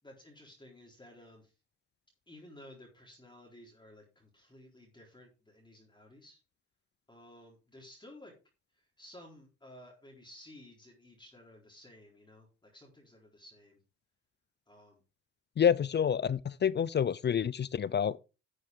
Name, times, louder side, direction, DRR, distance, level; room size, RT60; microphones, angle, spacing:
voice 1, 0.0-1.5 2.3-6.4 7.1-8.3 8.7-13.8 14.7-15.0, left 1 dB, 15° left, 4.0 m, -55 dB
voice 2, 15.6-18.2, left 8 dB, 35° left, 0.5 m, -28 dB
11.5 x 7.8 x 3.7 m
cardioid pair, 90°, 30 cm